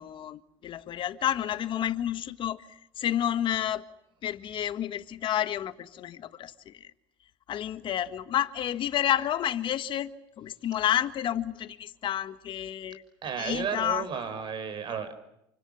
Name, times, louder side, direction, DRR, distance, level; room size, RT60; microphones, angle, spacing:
voice 1, 0.0-3.8 4.2-6.9 7.5-10.1 10.4-13.0 13.4-14.0, left 11 dB, 45° left, 1.7 m, -30 dB
voice 2, 13.2-15.1, right 7 dB, 45° right, 6.0 m, -33 dB
29.0 x 25.5 x 7.2 m
supercardioid pair, 115°, 12 cm